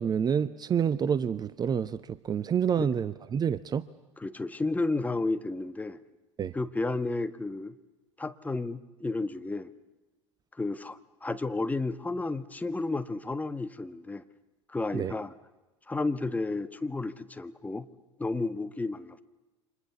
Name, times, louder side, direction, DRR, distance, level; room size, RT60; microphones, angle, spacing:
voice 1, 0.0-3.9 6.4-6.5 14.9-15.1, right 7 dB, 25° right, 15 dB, 0.8 m, -28 dB
voice 2, 4.2-6.0 6.5-7.7 8.2-9.7 10.6-14.2 14.7-15.3 15.9-17.9 18.2-19.2, left 3 dB, 10° left, 10 dB, 1.4 m, -32 dB
30.0 x 26.0 x 7.1 m, 1.2 s
figure-of-eight pair, 80°, 16 cm